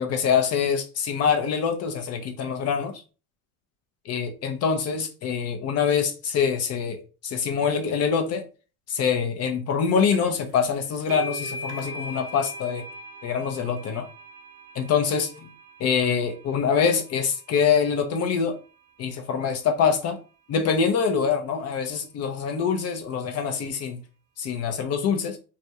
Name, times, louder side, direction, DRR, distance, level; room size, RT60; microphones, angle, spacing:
voice 1, 0.0-2.9 4.1-8.4 8.9-12.8 13.2-14.1 14.8-15.3 15.8-18.6 19.0-20.2 20.5-24.0 24.4-25.4, left 6 dB, 35° left, 0.4 m, -24 dB
sound 1, 10.1-10.4 10.7-18.0, equal, 35° right, 0.6 m, -40 dB
2.4 x 2.1 x 2.7 m
hypercardioid pair, 90°, 45 cm